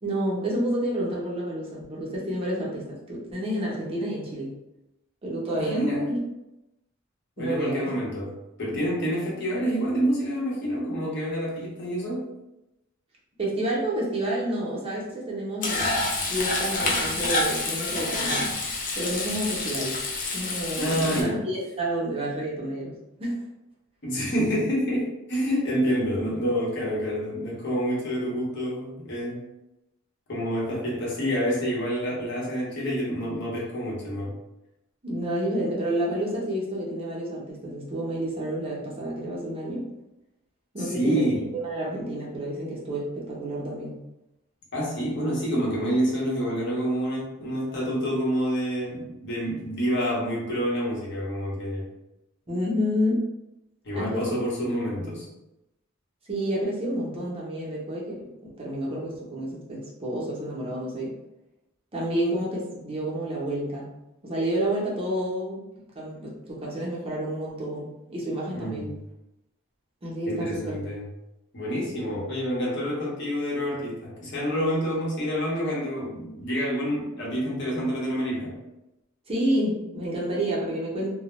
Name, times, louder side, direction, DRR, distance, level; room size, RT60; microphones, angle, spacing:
voice 1, 0.0-4.5 5.2-6.2 7.4-7.9 13.4-15.9 16.3-18.5 19.0-20.0 20.3-23.4 30.7-30.8 35.0-39.9 40.7-44.0 52.5-53.3 53.9-54.4 54.9-55.2 56.3-58.3 58.6-61.1 61.9-64.0 64.2-65.6 65.9-68.9 70.0-70.8 79.3-81.1, right 1 dB, 30° right, -5 dB, 0.6 m, -29 dB
voice 2, 5.6-6.2 7.4-8.3 8.6-12.3 20.8-21.4 24.0-29.5 30.3-34.3 40.8-41.5 44.7-51.9 53.8-55.3 68.5-68.9 70.3-71.0 71.5-78.6, equal, 60° left, -5 dB, 0.8 m, -28 dB
Frying (food), 15.6-21.2, left 2 dB, 40° left, 0.4 m, -28 dB
2.2 x 2.0 x 2.9 m, 0.92 s
head